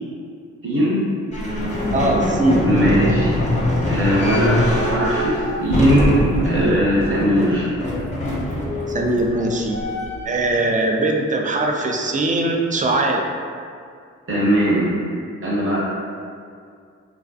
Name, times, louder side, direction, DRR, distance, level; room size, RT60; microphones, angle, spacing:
voice 1, 0.6-1.0 2.6-3.3 3.8-7.7 14.3-14.9 15.4-15.8, equal, 40° right, -7 dB, 1.0 m, -19 dB
sound 1, 1.3-10.4, left 1 dB, 20° left, 0.7 m, -23 dB
voice 2, 1.9-2.7 8.9-9.8 10.3-13.2, right 2 dB, 25° right, 1 dB, 0.3 m, -20 dB
2.3 x 2.3 x 2.5 m, 2.2 s
supercardioid pair, 45°, 32 cm